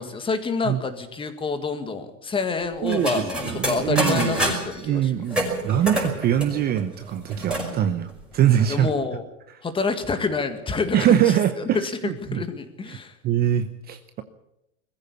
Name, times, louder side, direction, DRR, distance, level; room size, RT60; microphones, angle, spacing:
voice 1, 0.0-5.1 8.7-9.2 9.6-13.2, left 4 dB, 15° left, 9 dB, 1.9 m, -28 dB
voice 2, 2.8-4.3 4.8-8.9 10.9-12.4 13.2-14.2, right 10 dB, 25° right, 9 dB, 0.9 m, -23 dB
sound 1, 2.9-4.8 5.3-7.7 8.1-8.2 8.4-9.0, right 1 dB, ahead, 5.5 m, -27 dB
21.5 x 14.5 x 8.3 m, 0.85 s
supercardioid pair, 150°, 39 cm